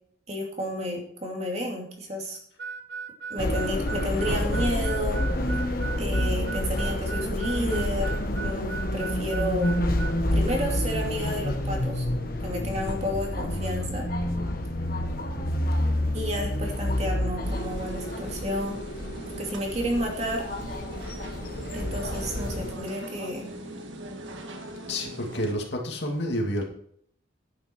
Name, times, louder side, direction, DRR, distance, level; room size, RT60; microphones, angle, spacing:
voice 1, 0.3-2.4 3.3-5.2 6.0-9.8 10.3-12.0 12.4-14.0 16.1-18.8 19.4-20.4 21.7-23.5, equal, 35° right, 0 dB, 2.5 m, -31 dB
Harmonica, 2.6-10.2, right 5 dB, 60° right, 0.8 m, -37 dB
sound 1, 3.4-22.7, left 1 dB, 50° left, 1.4 m, -28 dB
sound 2, 17.4-25.5, right 1 dB, 90° right, 1.7 m, -40 dB
voice 2, 24.9-26.6, equal, 65° left, 1 dB, 2.5 m, -29 dB
11.0 x 9.5 x 4.5 m, 0.63 s
head